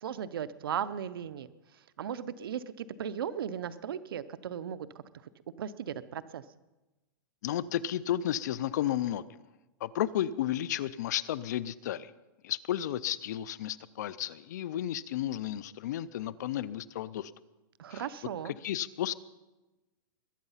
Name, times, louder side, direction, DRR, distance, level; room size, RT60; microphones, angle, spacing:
voice 1, 0.0-1.5 2.0-4.9 5.6-6.4 17.8-18.5, right 9 dB, 85° right, 16 dB, 0.7 m, -36 dB
voice 2, 7.4-9.4 9.8-12.1 12.4-17.3 17.9-18.0 18.6-19.1, left 11 dB, 50° left, 18 dB, 0.5 m, -33 dB
21.5 x 8.9 x 5.6 m, 1.1 s
supercardioid pair, 170°, 12 cm